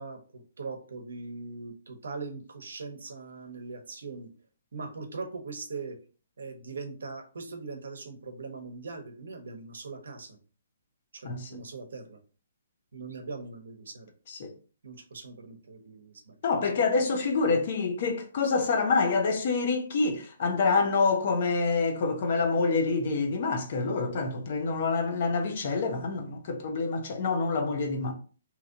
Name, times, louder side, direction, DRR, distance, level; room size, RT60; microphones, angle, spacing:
voice 1, 0.0-4.3 4.7-6.0 6.4-10.4 11.1-12.2 12.9-14.1 14.8-16.4, right 4 dB, 80° right, 0.9 m, -41 dB
voice 2, 11.2-11.6 14.3-14.5 16.4-28.1, left 4 dB, 45° left, 0.7 m, -27 dB
2.9 x 2.7 x 3.8 m
hypercardioid pair, 165°, 0 cm